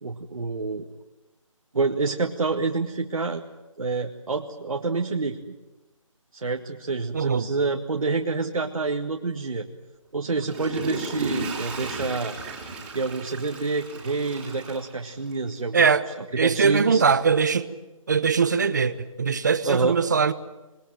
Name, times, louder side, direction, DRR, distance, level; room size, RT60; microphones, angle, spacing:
voice 1, 0.0-0.9 1.7-3.4 3.8-5.4 6.3-9.7 10.1-12.4 12.9-15.9 16.4-17.0 19.6-20.0, right 3 dB, 80° right, 2 dB, 1.9 m, -27 dB
voice 2, 7.1-7.5 15.7-16.0 16.4-17.7 18.1-20.3, right 5 dB, 35° right, 13 dB, 1.0 m, -21 dB
Water / Toilet flush, 10.2-15.5 16.0-16.1, right 3 dB, 5° right, 3.3 m, -35 dB
26.5 x 20.0 x 9.1 m, 1.1 s
hypercardioid pair, 175°, 17 cm